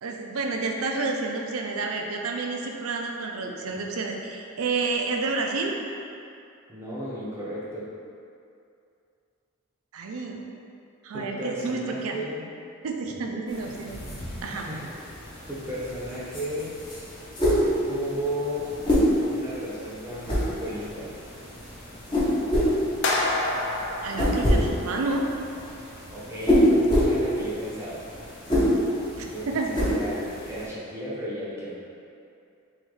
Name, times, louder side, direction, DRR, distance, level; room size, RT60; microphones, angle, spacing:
voice 1, 0.0-5.7 9.9-10.4 11.0-12.2 12.8-14.0 14.4-14.7 24.0-25.2 29.2-29.7, right 3 dB, 75° right, 1 dB, 0.4 m, -30 dB
voice 2, 6.7-7.9 11.1-12.5 14.5-15.0 15.5-16.8 17.8-18.8 19.2-21.1 26.1-28.0 29.3-31.8, equal, 10° right, -8 dB, 0.7 m, -34 dB
sound 1, 13.5-30.7, equal, 20° left, 0.7 m, -27 dB
sound 2, 23.0-25.3, left 2 dB, 55° left, 0.4 m, -28 dB
3.8 x 3.1 x 3.2 m, 2.6 s
head